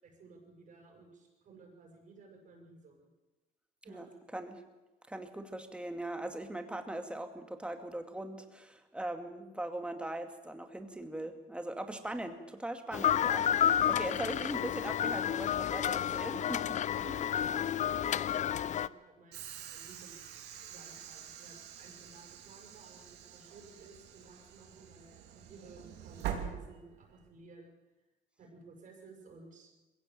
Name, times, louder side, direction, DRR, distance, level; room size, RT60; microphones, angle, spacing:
voice 1, 0.0-3.1 3.8-4.1 9.3-9.5 15.8-16.3 16.9-20.2 20.6-27.7 28.4-29.7, right 3 dB, 50° right, 2 dB, 6.3 m, -56 dB
voice 2, 5.1-16.8 17.1-17.2, right 1 dB, 5° right, 7 dB, 2.2 m, -40 dB
sound 1, 12.9-18.9, left 9 dB, 45° left, 0.6 m, -30 dB
Train / Sliding door, 19.3-27.3, right 9 dB, 85° right, 3.0 m, -45 dB
21.5 x 16.5 x 7.5 m, 1.1 s
cardioid pair, 110°, 17 cm